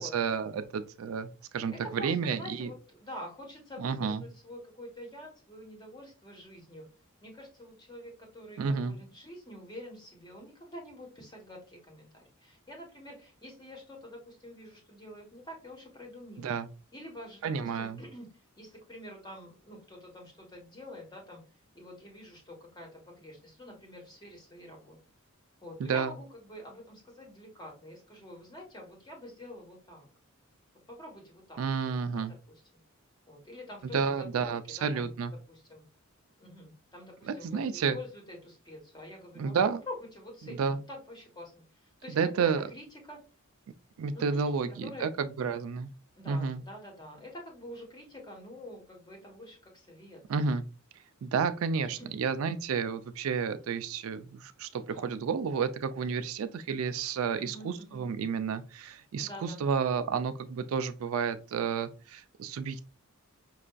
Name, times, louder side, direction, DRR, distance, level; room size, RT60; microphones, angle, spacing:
voice 1, 0.0-2.7 3.8-4.2 8.6-9.0 16.4-16.7 17.4-18.0 25.8-26.1 31.6-32.3 33.9-35.3 37.3-38.0 39.4-39.8 40.4-40.8 42.1-42.6 44.0-45.9 46.3-46.6 50.3-50.6 51.2-62.8, right 6 dB, 70° right, 0.3 m, -31 dB
voice 2, 1.7-6.8 7.2-16.5 16.9-18.3 18.6-21.4 21.7-25.0 25.6-30.1 30.9-32.6 33.3-35.8 36.4-39.6 39.8-43.2 44.1-45.1 46.1-50.2 52.0-52.1 54.7-55.1 57.3-58.0 59.2-59.6, left 1 dB, 20° left, 1.1 m, -47 dB
5.4 x 2.5 x 2.2 m
head